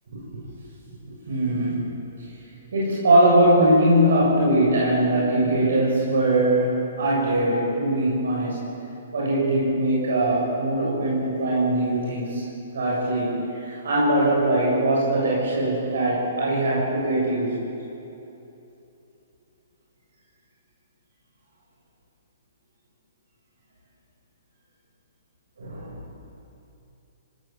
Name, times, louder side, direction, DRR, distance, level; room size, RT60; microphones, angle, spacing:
voice 1, 1.3-1.9 2.7-8.7 9.1-12.4 12.7-13.3 13.6-17.5 25.6-26.0, right 1 dB, 85° right, -4 dB, 7.6 m, -21 dB
26.5 x 18.5 x 7.5 m, 2.9 s
hypercardioid pair, 165°, 0 cm